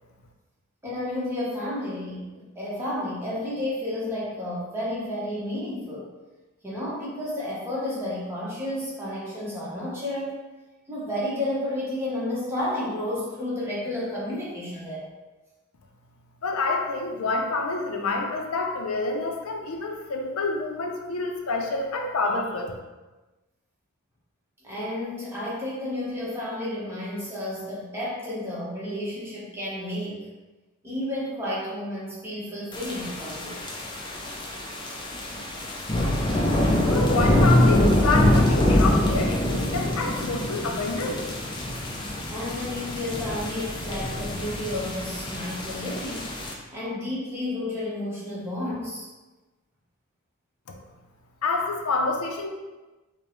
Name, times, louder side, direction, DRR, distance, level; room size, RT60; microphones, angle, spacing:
voice 1, 0.8-6.1 6.6-10.4 10.9-15.0 24.6-30.3 30.8-33.6 42.3-46.3 46.7-49.1, left 1 dB, 10° right, -7 dB, 0.9 m, -31 dB
voice 2, 16.4-22.7 36.2-36.3 36.9-41.3 50.7-50.8 51.4-52.5, left 3 dB, 80° left, 2 dB, 0.5 m, -27 dB
sound 1, 32.7-46.5, left 1 dB, 20° left, 0.4 m, -24 dB
5.1 x 2.1 x 3.0 m, 1.2 s
head